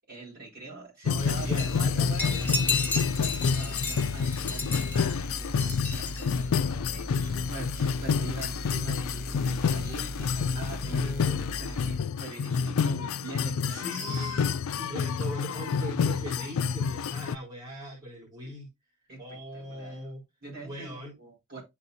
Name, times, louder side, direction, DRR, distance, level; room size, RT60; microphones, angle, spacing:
voice 1, 0.1-13.8 14.1-14.3 19.1-20.1 20.4-21.6, right 3 dB, 45° right, 4.4 m, -44 dB
voice 2, 1.0-2.5 10.9-11.6 13.6-18.7 19.2-20.2 20.6-21.1, equal, 20° right, 3.3 m, -40 dB
sound 1, 1.1-17.4, left 6 dB, 75° left, 0.4 m, -29 dB
sound 2, 1.2-12.0, equal, 45° left, 1.2 m, -39 dB
sound 3, 1.6-1.9 2.2-6.5, left 4 dB, 10° left, 1.4 m, -33 dB
11.5 x 4.3 x 2.7 m
head